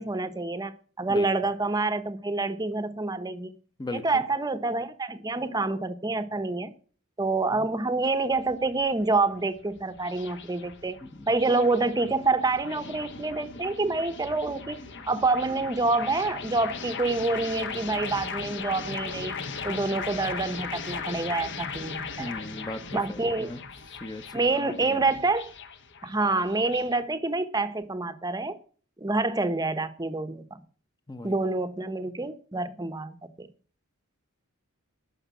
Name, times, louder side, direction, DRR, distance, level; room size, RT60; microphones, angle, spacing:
voice 1, 0.0-3.5 3.9-6.7 7.2-11.0 11.3-14.8 15.1-19.3 19.6-22.3 22.9-23.5 24.3-25.5 26.0-28.6 29.0-30.4 31.2-33.5, right 3 dB, 20° right, 0.9 m, -27 dB
voice 2, 3.8-4.2 7.5-7.7 11.0-11.3 22.2-23.6 23.9-25.0 31.1-31.4, left 2 dB, 20° left, 0.9 m, -38 dB
sound 1, 8.0-27.0, left 5 dB, 55° left, 1.3 m, -38 dB
12.0 x 6.5 x 8.3 m
head